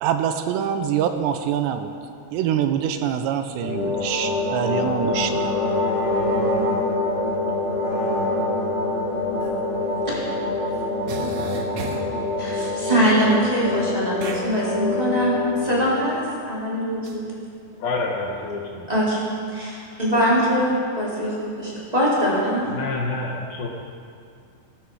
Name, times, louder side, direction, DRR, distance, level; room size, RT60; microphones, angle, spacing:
voice 1, 0.0-1.9 2.3-5.5, right 9 dB, 85° right, 8 dB, 2.9 m, -24 dB
sound 1, 3.6-15.8, left 2 dB, 35° left, 3.5 m, -25 dB
sound 2, 9.4-9.5 10.7-10.8 11.1-12.2 14.2-14.4 17.0-17.2, right 3 dB, 65° right, 1.7 m, -34 dB
voice 2, 12.4-15.3 15.6-17.2 18.9-19.2 19.5-22.7, equal, 10° right, -7 dB, 3.4 m, -22 dB
voice 3, 17.8-18.8 22.7-23.7, left 3 dB, 70° left, 0 dB, 2.6 m, -28 dB
17.5 x 14.5 x 4.8 m, 2.4 s
omnidirectional pair, 5.1 m